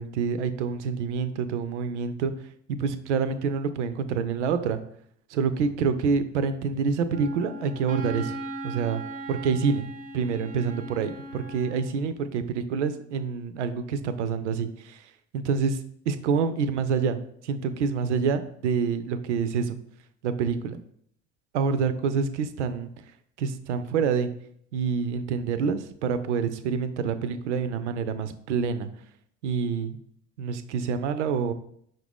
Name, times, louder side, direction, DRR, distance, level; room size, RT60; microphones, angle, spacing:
voice 1, 0.0-2.3 2.7-4.8 5.3-8.4 8.6-9.0 9.3-15.1 15.3-15.8 16.1-17.2 17.4-19.8 20.2-20.8 21.5-22.9 23.4-24.3 24.7-28.9 29.4-30.0 30.4-31.5, right 6 dB, 75° right, 11 dB, 0.5 m, -27 dB
Wind instrument woodwind instrument, 7.1-11.9, right 1 dB, 25° right, 0.6 m, -38 dB
5.7 x 2.6 x 3.5 m, 0.66 s
figure-of-eight pair, 65°, 36 cm